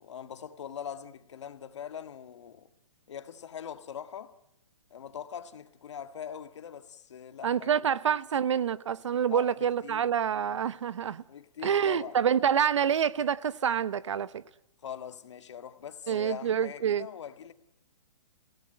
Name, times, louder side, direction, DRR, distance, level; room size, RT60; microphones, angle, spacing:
voice 1, 0.0-2.7 3.1-4.3 4.9-7.8 9.3-9.5 9.8-10.1 11.3-12.2 14.8-17.5, left 8 dB, 55° left, 1.7 m, -42 dB
voice 2, 7.4-11.2 11.6-14.4 16.1-17.1, right 8 dB, 55° right, 0.9 m, -27 dB
28.0 x 17.5 x 7.7 m
hypercardioid pair, 170°, 18 cm